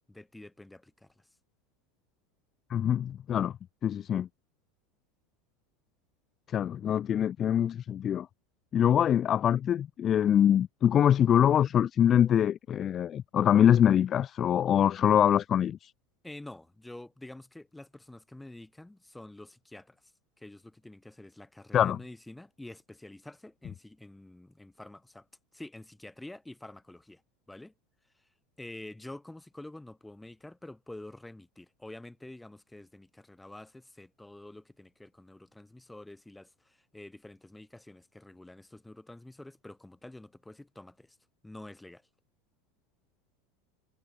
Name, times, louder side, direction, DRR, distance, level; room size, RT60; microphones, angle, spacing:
voice 1, 0.1-1.1 16.2-20.0 20.4-25.3 25.5-27.2 27.5-27.7 28.6-41.2 41.4-42.0, left 1 dB, 5° left, 2.0 m, -48 dB
voice 2, 2.7-3.6 3.8-4.3 6.5-8.3 8.7-15.9 21.7-22.0, left 9 dB, 25° left, 0.4 m, -24 dB
supercardioid pair, 170°, 0 cm